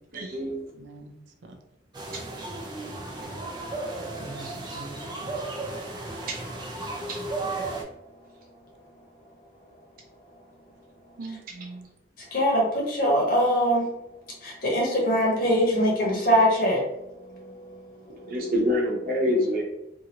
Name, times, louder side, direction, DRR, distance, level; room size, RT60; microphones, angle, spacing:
voice 1, 0.1-0.6 7.1-7.2 18.3-19.6, left 1 dB, 50° right, 0.9 m, -25 dB
voice 2, 0.7-1.1 1.4-1.5 4.2-5.3 11.2-11.9, right 2 dB, 75° right, 0.5 m, -42 dB
sound 1, 1.9-7.8, right 2 dB, 25° right, 0.5 m, -34 dB
voice 3, 12.3-13.9 14.4-18.3, equal, 50° left, 1.0 m, -23 dB
2.8 x 2.5 x 2.8 m
head